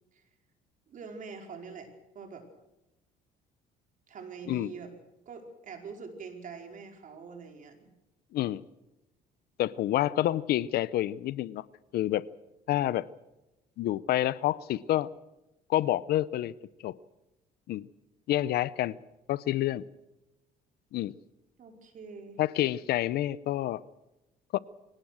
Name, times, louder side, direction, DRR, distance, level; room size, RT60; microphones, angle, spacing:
voice 1, 0.9-2.5 4.1-4.9 5.2-7.9 21.6-22.4, right 5 dB, 50° right, 4.7 m, -44 dB
voice 2, 9.6-11.6 11.9-12.2 12.7-13.1 13.8-15.1 15.7-16.5 16.8-16.9 17.7-17.9 18.3-19.0 19.3-19.8 20.9-21.1 22.4-23.8 24.5-24.6, left 14 dB, 70° left, 0.7 m, -28 dB
23.0 x 18.0 x 6.4 m
cardioid pair, 110°, 17 cm